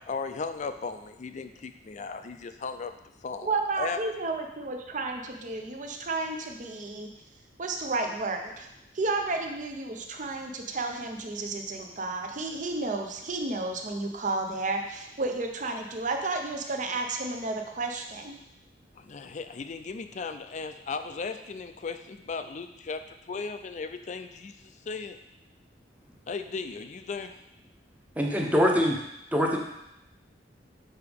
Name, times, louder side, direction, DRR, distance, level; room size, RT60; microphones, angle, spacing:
voice 1, 0.0-2.9 3.2-4.0 19.0-23.0 23.3-25.2 26.3-27.4, left 4 dB, 40° left, 9 dB, 0.4 m, -36 dB
voice 2, 3.4-7.1 7.6-8.7 8.9-18.4, right 3 dB, 45° right, 3 dB, 0.7 m, -32 dB
voice 3, 28.2-28.9 29.3-29.6, equal, 10° right, 0 dB, 0.8 m, -23 dB
6.6 x 4.8 x 3.5 m, 0.86 s
head